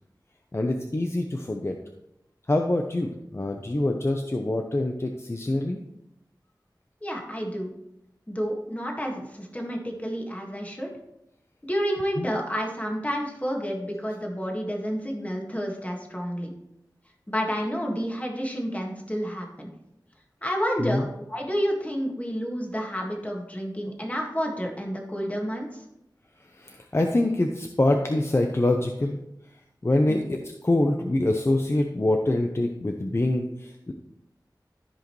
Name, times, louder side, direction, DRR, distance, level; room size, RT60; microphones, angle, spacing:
voice 1, 0.5-1.8 2.5-5.8 12.2-12.3 20.8-21.1 26.5-29.2 29.8-33.9, left 1 dB, 35° left, 3 dB, 0.7 m, -25 dB
voice 2, 7.0-7.7 8.3-10.9 11.6-16.5 17.3-19.7 20.4-21.0 21.3-25.8 30.0-30.2, equal, 20° left, 0 dB, 1.7 m, -30 dB
13.5 x 5.1 x 3.1 m, 0.84 s
wide cardioid pair, 60°, 8 cm